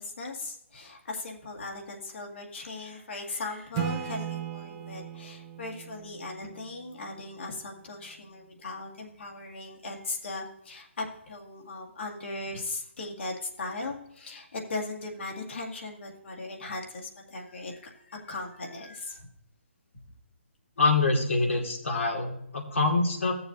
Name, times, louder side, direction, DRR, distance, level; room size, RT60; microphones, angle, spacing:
voice 1, 0.0-19.3, left 2 dB, 65° left, 0 dB, 2.1 m, -38 dB
Acoustic guitar / Strum, 3.7-7.3, right 9 dB, 25° right, 0.7 m, -37 dB
voice 2, 20.8-23.4, left 3 dB, 90° left, 1 dB, 2.1 m, -25 dB
15.0 x 7.0 x 2.7 m, 0.76 s
hypercardioid pair, 155°, 7 cm